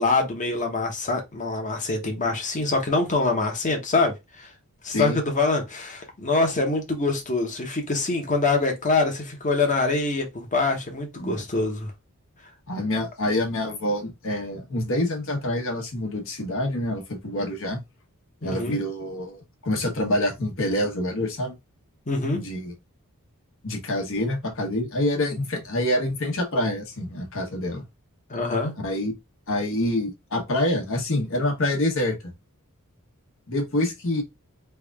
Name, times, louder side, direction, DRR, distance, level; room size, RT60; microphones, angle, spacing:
voice 1, 0.0-4.5 4.8-11.9 18.4-18.8 22.1-22.4 28.3-28.7, left 3 dB, 35° left, 1.1 m, -24 dB
voice 2, 4.9-5.2 11.2-11.4 12.7-17.8 18.4-21.5 22.4-22.7 23.6-27.8 28.8-29.1 29.5-32.3 33.5-34.2, left 1 dB, 65° left, 1.3 m, -26 dB
3.4 x 2.5 x 3.4 m
head